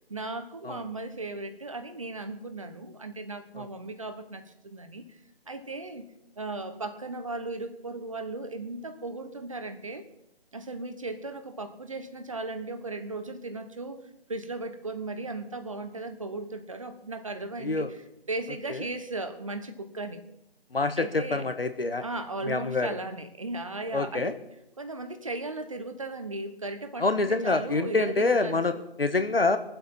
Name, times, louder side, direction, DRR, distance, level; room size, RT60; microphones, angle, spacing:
voice 1, 0.1-5.2 5.5-6.0 6.4-10.0 10.5-14.0 14.3-18.0 18.3-20.2 21.0-21.5 22.0-24.3 24.8-28.8, right 2 dB, 30° right, 8 dB, 1.1 m, -36 dB
voice 2, 20.7-22.0 22.4-22.9 23.9-24.3 27.0-28.7 29.0-29.6, left 3 dB, 65° left, 9 dB, 1.5 m, -26 dB
23.0 x 7.9 x 5.7 m, 0.84 s
figure-of-eight pair, 155°, 31 cm